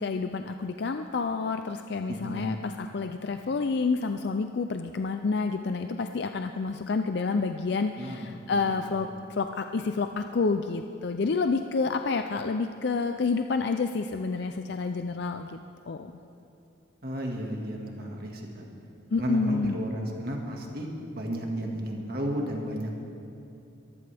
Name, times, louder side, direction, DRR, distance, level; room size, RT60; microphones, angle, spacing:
voice 1, 0.0-15.6 15.9-16.1 19.1-19.8, left 4 dB, 55° left, 7 dB, 0.4 m, -29 dB
voice 2, 2.1-2.6 8.0-8.9 17.0-18.6 19.2-22.9, right 1 dB, 50° right, 0 dB, 1.9 m, -33 dB
23.0 x 14.5 x 3.5 m, 2.6 s
head